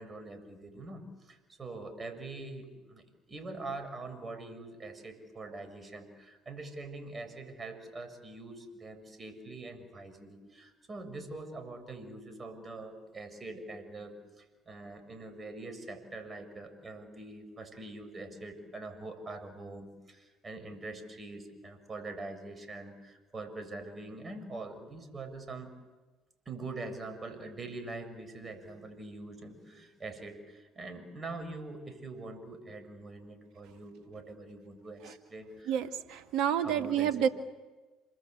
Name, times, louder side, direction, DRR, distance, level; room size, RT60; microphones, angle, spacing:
voice 1, 0.0-25.7 26.5-35.8 36.6-37.3, right 2 dB, 30° right, 9 dB, 7.0 m, -44 dB
voice 2, 35.7-37.3, right 9 dB, 65° right, 8 dB, 2.0 m, -29 dB
28.0 x 25.0 x 8.2 m, 1.2 s
hypercardioid pair, 55°, 0 cm